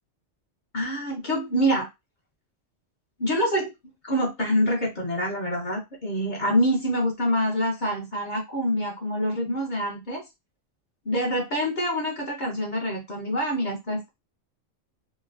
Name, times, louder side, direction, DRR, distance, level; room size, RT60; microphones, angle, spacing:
voice 1, 0.7-1.9 3.2-3.7 4.0-10.2 11.1-14.1, equal, 50° left, -1 dB, 0.6 m, -26 dB
3.0 x 2.0 x 2.3 m, 0.22 s
omnidirectional pair, 1.3 m